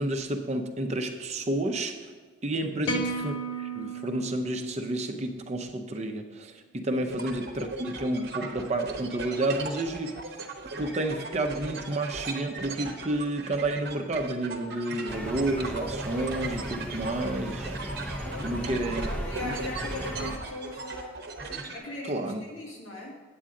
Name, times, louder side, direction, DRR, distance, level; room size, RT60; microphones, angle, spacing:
voice 1, 0.0-2.1 2.4-10.2 10.8-17.8 18.4-19.0 19.4-19.5 22.0-22.4, right 1 dB, 35° right, 5 dB, 0.6 m, -30 dB
voice 2, 2.6-3.0 6.9-7.1 18.3-21.2 21.7-23.2, left 2 dB, 90° left, -2 dB, 2.0 m, -39 dB
sound 1, 2.8-5.2, right 2 dB, 65° left, 0.6 m, -34 dB
sound 2, 7.1-21.8, right 3 dB, 50° right, 0.9 m, -38 dB
sound 3, 15.1-20.4, equal, 10° left, 0.6 m, -36 dB
8.7 x 8.5 x 3.7 m, 1.4 s
head